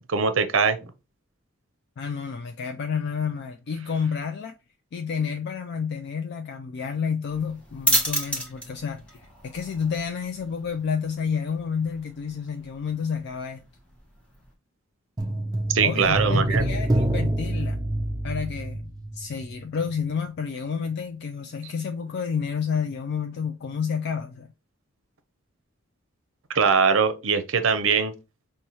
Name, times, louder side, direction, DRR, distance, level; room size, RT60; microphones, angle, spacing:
voice 1, 0.1-0.8 15.7-16.6 26.5-28.1, right 5 dB, 70° right, 0.6 m, -21 dB
voice 2, 2.0-4.6 4.9-13.6 15.8-17.8 18.2-24.5, left 6 dB, 55° left, 0.3 m, -30 dB
sound 1, 7.3-14.5, right 1 dB, 5° left, 1.0 m, -32 dB
sound 2, 15.2-19.6 19.9-20.0, right 1 dB, 20° right, 0.4 m, -26 dB
5.3 x 2.2 x 3.0 m
head